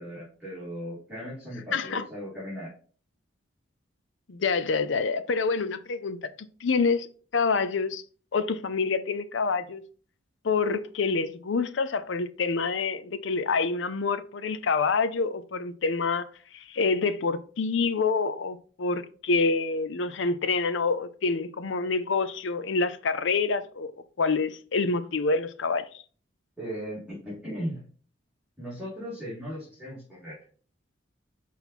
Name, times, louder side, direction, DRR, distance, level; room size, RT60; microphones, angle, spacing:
voice 1, 0.0-2.7 26.6-27.8 28.6-30.4, equal, 5° right, 2.6 m, -37 dB
voice 2, 1.7-2.0 4.3-6.3 6.6-7.1 7.3-8.0 8.3-9.8 10.4-16.3 16.5-23.9 24.2-25.9, left 4 dB, 75° left, 0.6 m, -27 dB
6.1 x 4.1 x 4.2 m
head